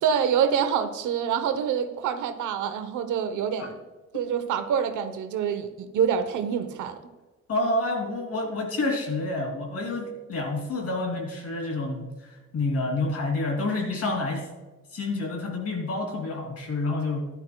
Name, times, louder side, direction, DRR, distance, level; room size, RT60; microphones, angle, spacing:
voice 1, 0.0-3.8 4.1-7.0, right 8 dB, 80° right, 10 dB, 1.0 m, -26 dB
voice 2, 7.5-12.1 12.5-14.5 14.9-17.3, left 2 dB, 50° left, 1 dB, 3.2 m, -28 dB
14.5 x 11.0 x 2.3 m, 1.2 s
cardioid pair, 90°, 30 cm